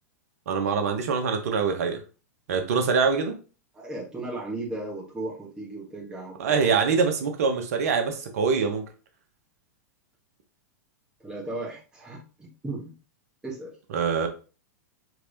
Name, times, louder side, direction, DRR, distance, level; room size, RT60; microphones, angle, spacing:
voice 1, 0.5-2.0 2.5-3.3 6.4-8.8 13.9-14.3, right 5 dB, 55° right, 6 dB, 1.0 m, -24 dB
voice 2, 3.7-6.7 11.2-12.9 13.4-13.7, right 2 dB, 10° right, -5 dB, 1.4 m, -36 dB
4.6 x 3.3 x 2.7 m, 0.35 s
figure-of-eight pair, 95°, 9 cm